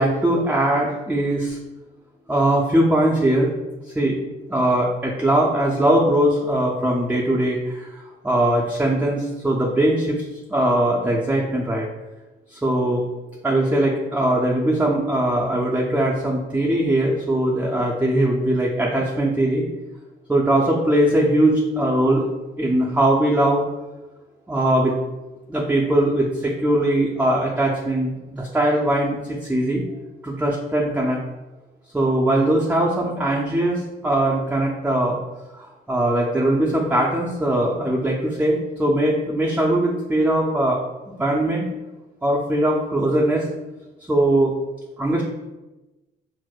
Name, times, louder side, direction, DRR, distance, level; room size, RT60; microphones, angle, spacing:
voice 1, 0.0-1.6 2.3-3.5 3.8-4.2 4.5-10.2 10.5-11.9 12.5-13.0 13.4-19.7 20.3-22.3 22.6-23.6 24.5-24.9 25.5-29.8 30.2-31.2 31.9-35.2 35.5-40.8 41.1-41.7 42.2-43.5 44.1-44.5 45.0-45.2, right 1 dB, 5° right, -3 dB, 0.4 m, -20 dB
4.3 x 2.0 x 2.3 m, 1.1 s
cardioid pair, 90°, 20 cm